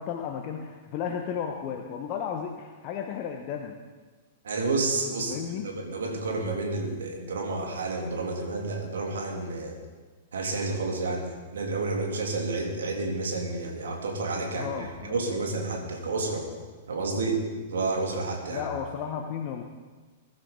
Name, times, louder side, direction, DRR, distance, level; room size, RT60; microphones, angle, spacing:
voice 1, 0.0-3.8 5.3-5.7 14.5-15.2 18.5-19.6, left 7 dB, 40° left, 3 dB, 1.2 m, -34 dB
voice 2, 4.4-5.3 5.6-9.8 10.3-14.7 15.0-16.4 16.9-17.4 17.7-18.7, right 3 dB, 65° right, 1 dB, 3.0 m, -30 dB
21.5 x 11.5 x 4.0 m, 1.3 s
figure-of-eight pair, 100°, 0 cm